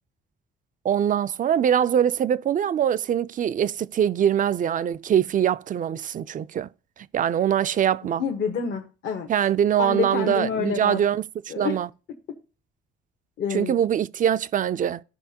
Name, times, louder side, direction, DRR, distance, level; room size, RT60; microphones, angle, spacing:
voice 1, 0.8-6.7 7.1-8.2 9.3-11.2 11.6-11.9 13.5-15.0, right 9 dB, 40° right, 0.4 m, -23 dB
voice 2, 8.2-9.3 9.8-11.0 11.5-11.8 13.4-13.7, left 6 dB, 65° left, 1.1 m, -28 dB
14.5 x 5.0 x 2.8 m
cardioid pair, 90°, 20 cm